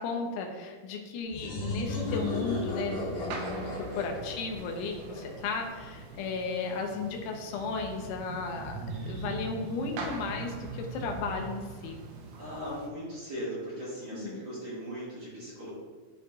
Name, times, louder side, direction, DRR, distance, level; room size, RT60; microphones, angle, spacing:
voice 1, 0.0-12.0 14.1-14.4, left 4 dB, 85° left, 2 dB, 3.2 m, -35 dB
sound 1, 1.3-5.9, left 2 dB, 65° left, 2.0 m, -35 dB
sound 2, 1.8-12.9, right 3 dB, 75° right, 2.5 m, -42 dB
voice 2, 12.4-15.7, equal, 40° right, -10 dB, 2.6 m, -38 dB
12.5 x 4.5 x 2.6 m, 1.4 s
omnidirectional pair, 5.4 m